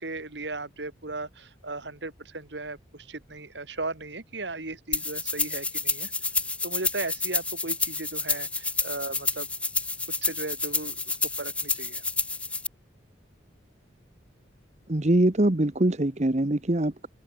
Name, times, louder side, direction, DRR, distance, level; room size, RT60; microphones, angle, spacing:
voice 1, 0.0-6.1 6.6-9.5 10.2-12.0, right 2 dB, 70° right, 2.8 m, -36 dB
sound 1, 4.9-12.7, left 3 dB, 5° left, 0.5 m, -29 dB
voice 2, 14.9-17.1, right 1 dB, 40° right, 1.0 m, -23 dB
head